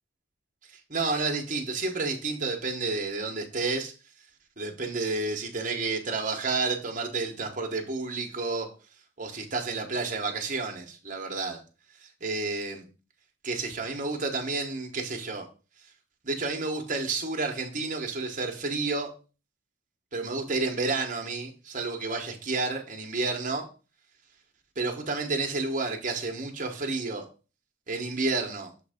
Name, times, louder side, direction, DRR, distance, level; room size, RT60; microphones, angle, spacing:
voice 1, 0.9-3.9 4.6-8.7 9.2-11.6 12.2-12.8 13.4-15.4 16.2-19.1 20.1-23.7 24.8-27.2 27.9-28.7, right 3 dB, 40° right, 2 dB, 1.2 m, -30 dB
7.1 x 3.3 x 5.0 m, 0.34 s
head